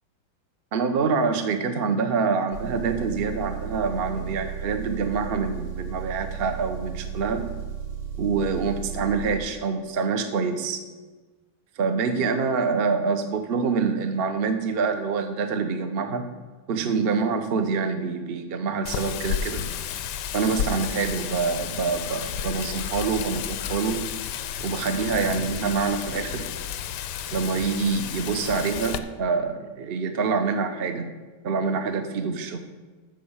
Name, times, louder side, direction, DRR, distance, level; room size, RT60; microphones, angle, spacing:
voice 1, 0.7-7.5 8.2-10.8 11.8-16.3 16.7-19.7 20.3-24.1 24.6-26.5 27.3-31.1 31.4-32.6, right 5 dB, 55° right, 7 dB, 0.6 m, -26 dB
Engine, 2.5-9.4, right 8 dB, 80° right, 4.0 m, -34 dB
Wind, 18.9-29.0, left 9 dB, 75° left, 1.0 m, -32 dB
9.1 x 6.6 x 7.2 m, 1.3 s
omnidirectional pair, 2.4 m